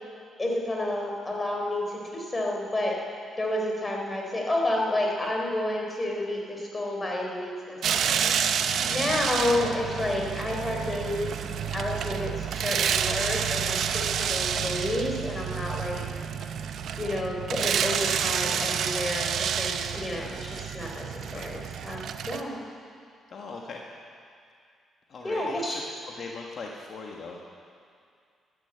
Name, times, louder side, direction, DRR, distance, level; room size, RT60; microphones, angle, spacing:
voice 1, 0.4-3.0 3.4-8.3 8.9-11.4 11.7-16.1 17.0-22.6 25.2-25.8, left 1 dB, 20° left, 0 dB, 3.6 m, -30 dB
sound 1, 7.8-22.4, right 8 dB, 70° right, 0.7 m, -29 dB
voice 2, 8.8-9.2 14.5-14.7 21.2-21.5 23.3-23.8 25.1-25.8 26.1-27.4, left 4 dB, 55° left, -1 dB, 1.5 m, -40 dB
13.5 x 10.5 x 8.8 m, 2.3 s
cardioid pair, 90°, 0 cm